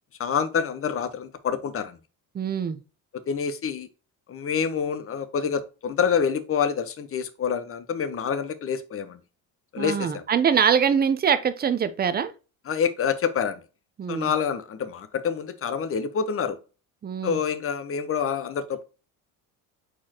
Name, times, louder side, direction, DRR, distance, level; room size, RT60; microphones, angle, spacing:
voice 1, 0.2-2.0 3.3-3.9 4.3-9.2 9.7-10.2 12.7-13.6 14.1-16.6 17.2-18.8, left 7 dB, 35° left, 0.8 m, -27 dB
voice 2, 2.3-2.8 9.8-12.3 14.0-14.3 17.0-17.4, right 7 dB, 25° right, 0.6 m, -23 dB
4.4 x 4.2 x 2.8 m
cardioid pair, 105°, 40 cm